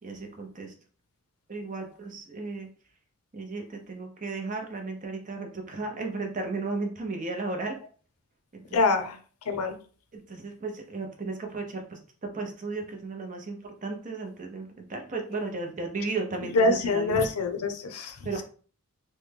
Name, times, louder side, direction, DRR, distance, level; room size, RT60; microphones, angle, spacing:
voice 1, 0.0-0.7 1.5-2.7 3.3-7.8 8.5-9.0 10.1-12.0 12.3-17.2 18.2-18.4, right 3 dB, 35° right, 3 dB, 0.6 m, -35 dB
voice 2, 8.7-9.2 9.5-9.8 16.5-18.4, left 3 dB, 80° left, 6 dB, 0.5 m, -25 dB
3.2 x 2.2 x 3.2 m, 0.41 s
head